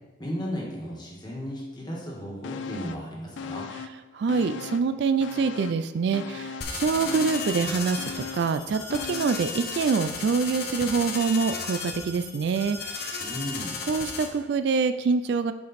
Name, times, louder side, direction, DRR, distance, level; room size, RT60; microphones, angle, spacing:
voice 1, 0.2-3.6 13.2-13.7, equal, 25° left, -3 dB, 1.5 m, -35 dB
sound 1, 2.4-3.1 3.4-4.9 5.2-9.6 9.9-10.0, left 5 dB, 75° left, 0.4 m, -38 dB
voice 2, 4.1-13.2 13.9-15.5, right 5 dB, 60° right, 11 dB, 0.3 m, -25 dB
sound 2, 6.6-14.3, left 5 dB, 55° left, 0.9 m, -34 dB
6.9 x 5.0 x 4.1 m, 1.1 s
head